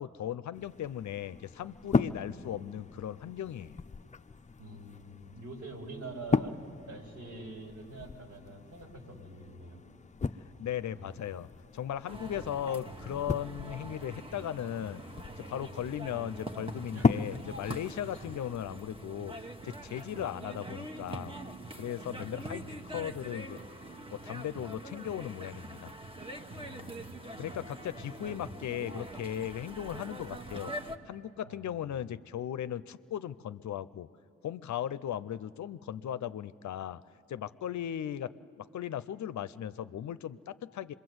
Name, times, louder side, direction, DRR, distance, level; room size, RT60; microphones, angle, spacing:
voice 1, 0.0-3.8 10.6-15.0 15.4-19.3 19.6-21.4 21.8-22.6 22.9-23.6 24.1-25.9 27.4-30.7 31.0-34.1 34.4-37.0 37.3-40.9, left 10 dB, 70° left, 15 dB, 0.6 m, -37 dB
sound 1, 0.5-18.5, left 4 dB, 25° left, 0.5 m, -37 dB
voice 2, 2.1-3.0 4.6-6.6 6.9-9.8 10.9-11.4 16.9-17.4 18.2-18.3 22.1-22.9 26.5-27.1 28.2-28.5 31.4-32.0, right 1 dB, 70° right, 1 dB, 3.9 m, -46 dB
sound 2, 12.1-31.0, right 1 dB, 20° right, 1.3 m, -44 dB
25.5 x 22.0 x 7.9 m, 2.5 s
cardioid pair, 70°, 30 cm